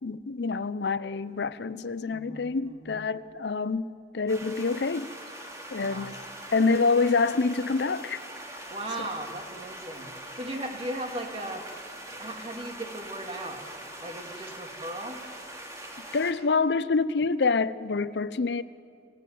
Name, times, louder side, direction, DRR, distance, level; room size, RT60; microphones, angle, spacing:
voice 1, 0.0-5.1 5.7-6.2 6.5-8.2 16.1-18.6, left 4 dB, 70° left, 0.6 m, -26 dB
voice 2, 2.1-3.0 5.7-6.1 8.7-11.7 12.1-13.6 14.0-15.2, right 1 dB, 35° right, 2.3 m, -37 dB
sound 1, 4.3-16.3, right 1 dB, 15° right, 2.5 m, -42 dB
25.5 x 15.0 x 9.3 m
head